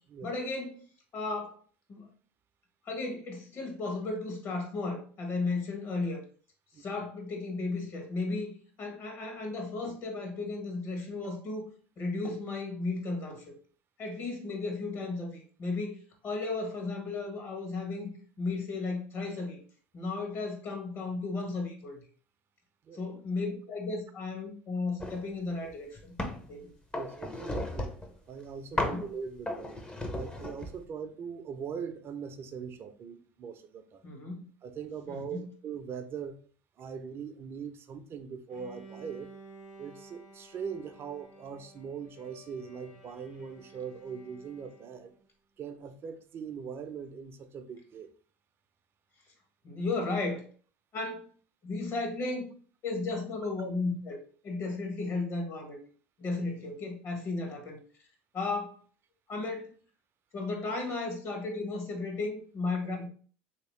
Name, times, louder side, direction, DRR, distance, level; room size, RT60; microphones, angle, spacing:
voice 1, 0.2-0.8 1.1-1.6 1.9-2.1 2.8-6.2 6.7-11.7 12.0-13.5 14.0-16.0 16.2-19.6 19.9-22.0 22.9-26.1 26.5-26.7 28.7-29.0 34.0-34.5 35.1-35.5 49.6-50.5 50.9-51.3 51.6-52.5 52.8-55.8 56.2-57.8 58.3-58.8 59.3-59.7 60.3-63.1, left 3 dB, 45° left, 1.2 m, -34 dB
voice 2, 22.8-23.2 26.9-27.9 28.3-29.8 30.1-34.0 34.6-36.4 36.8-39.3 39.8-45.1 45.6-48.1, right 6 dB, 40° right, 0.5 m, -41 dB
sound 1, 25.0-25.3 25.7-26.5 26.9-28.1 28.8-29.1 29.5-30.8, left 1 dB, 15° left, 0.7 m, -35 dB
Bowed string instrument, 38.5-45.2, right 2 dB, 70° left, 1.0 m, -53 dB
3.0 x 2.8 x 3.1 m
supercardioid pair, 90°, 6 cm